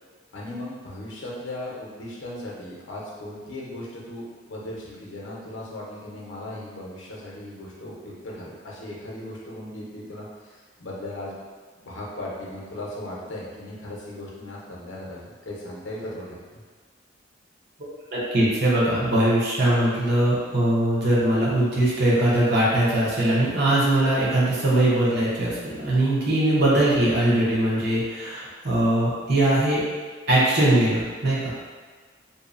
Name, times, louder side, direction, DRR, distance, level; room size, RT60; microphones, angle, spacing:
voice 1, 0.3-11.4 11.8-16.6, left 1 dB, 70° left, -4 dB, 0.6 m, -37 dB
voice 2, 18.1-29.8 30.3-31.5, right 1 dB, 55° right, -7 dB, 0.7 m, -21 dB
2.7 x 2.0 x 2.4 m, 1.5 s
head